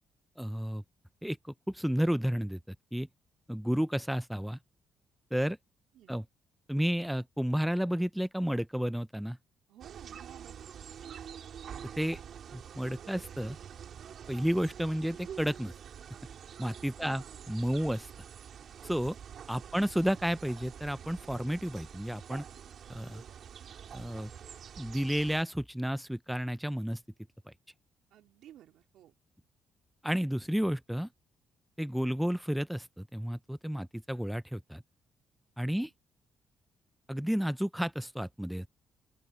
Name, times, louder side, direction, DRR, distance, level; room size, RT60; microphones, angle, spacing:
voice 1, 0.4-0.8 1.2-3.1 3.5-4.6 5.3-5.6 6.1-6.2 6.7-9.4 12.0-12.2 12.5-13.6 14.3-15.7 16.6-17.2 17.5-18.1 18.8-19.2 19.5-22.4 22.9-23.2 23.9-24.3 24.8-27.0 30.0-31.1 31.8-34.8 35.6-35.9 37.1-38.7, equal, ahead, 0.6 m, -31 dB
voice 2, 9.7-10.7 11.0-11.2 17.0-17.5 19.3-19.9 28.1-29.2 35.7-35.9, right 12 dB, 80° right, 3.6 m, -55 dB
sound 1, 9.8-25.4, right 8 dB, 60° right, 3.2 m, -47 dB
open air
cardioid pair, 90°, 0 cm